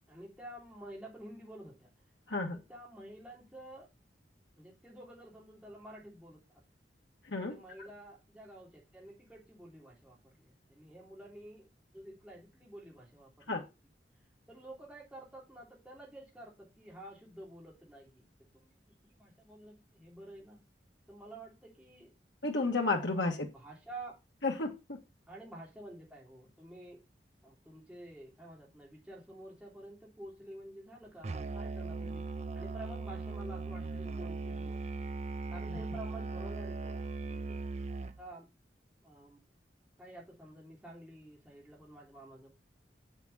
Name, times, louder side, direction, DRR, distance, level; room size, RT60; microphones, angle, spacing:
voice 1, 0.1-1.9 2.5-3.9 4.6-6.6 7.5-11.7 11.9-13.6 14.5-18.2 18.5-20.6 21.1-22.1 23.2-24.2 25.3-27.0 27.4-32.2 32.5-34.8 35.5-37.6 38.2-38.5 39.0-39.4 40.0-42.5, right 1 dB, 5° right, 3.3 m, -50 dB
voice 2, 2.3-2.6 7.3-7.5 13.5-13.6 22.4-23.5 24.4-25.0, left 3 dB, 85° left, 1.5 m, -32 dB
Musical instrument, 31.2-38.3, right 3 dB, 35° right, 0.5 m, -39 dB
7.5 x 7.2 x 4.1 m
head